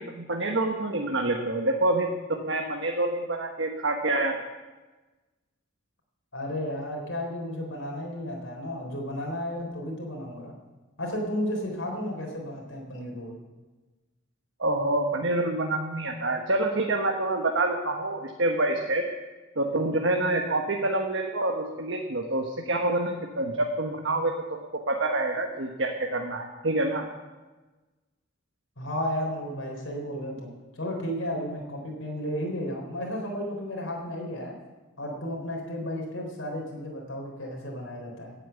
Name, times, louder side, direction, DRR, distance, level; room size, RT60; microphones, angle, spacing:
voice 1, 0.0-4.4 14.6-19.0 19.6-24.6 24.9-27.1, right 2 dB, 70° right, 2 dB, 1.4 m, -27 dB
voice 2, 6.3-10.5 11.0-13.3 28.8-34.5 35.0-38.3, equal, 85° left, 0 dB, 3.8 m, -33 dB
17.5 x 8.9 x 7.0 m, 1.2 s
head